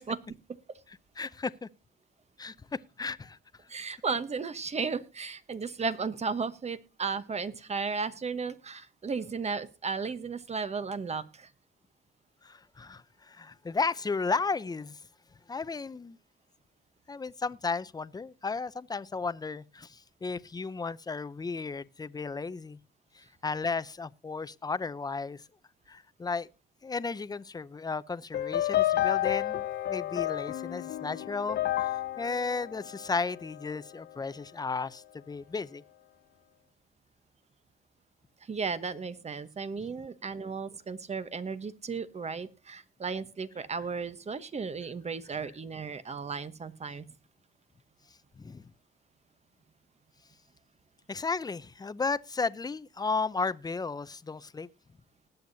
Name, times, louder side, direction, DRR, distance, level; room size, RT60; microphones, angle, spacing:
voice 1, 1.2-1.7 2.4-3.4 12.4-15.0 15.5-16.2 17.1-22.8 23.1-25.4 25.9-26.5 26.8-35.8 48.4-48.6 51.1-54.7, left 4 dB, 20° left, 0.6 m, -34 dB
voice 2, 3.7-11.5 38.4-47.1, right 5 dB, 35° right, 1.1 m, -34 dB
sound 1, 28.3-33.7, left 13 dB, 55° left, 0.6 m, -30 dB
20.0 x 8.0 x 2.7 m
cardioid pair, 90°, 20 cm